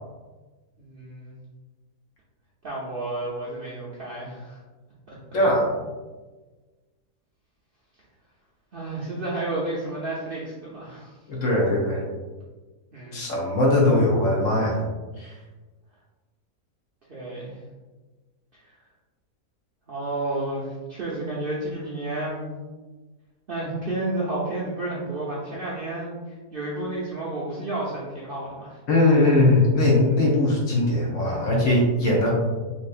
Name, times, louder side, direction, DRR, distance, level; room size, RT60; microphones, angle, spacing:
voice 1, 0.8-1.4 2.6-4.6 8.7-11.2 12.9-13.3 17.1-17.6 18.5-18.6 19.9-22.5 23.5-28.8, right 2 dB, 85° right, -7 dB, 0.4 m, -31 dB
voice 2, 5.3-5.7 11.3-12.0 13.1-14.8 15.2-15.3 28.9-32.3, left 2 dB, 60° left, -4 dB, 0.9 m, -20 dB
3.3 x 2.8 x 2.4 m, 1.3 s
omnidirectional pair, 1.7 m